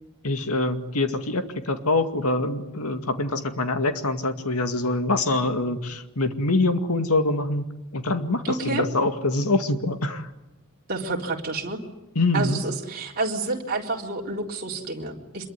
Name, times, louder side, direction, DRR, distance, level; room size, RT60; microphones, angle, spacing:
voice 1, 0.2-7.7 7.9-10.3 12.2-12.6, left 2 dB, 80° left, 7 dB, 2.2 m, -24 dB
voice 2, 8.4-8.8 10.9-11.8 12.3-15.5, right 2 dB, 45° right, -1 dB, 4.0 m, -29 dB
26.5 x 22.5 x 9.6 m, 0.92 s
head